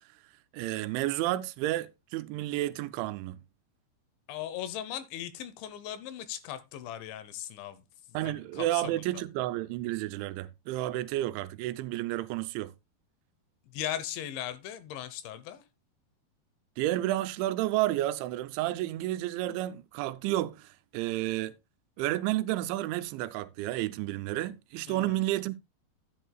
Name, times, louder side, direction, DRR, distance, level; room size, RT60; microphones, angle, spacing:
voice 1, 0.5-3.4 8.1-12.7 16.8-21.6 22.0-25.5, right 15 dB, 90° right, 3.0 m, -31 dB
voice 2, 4.3-9.3 13.6-15.6 24.9-25.2, left 11 dB, 85° left, 3.3 m, -39 dB
11.0 x 10.5 x 2.3 m
omnidirectional pair, 5.2 m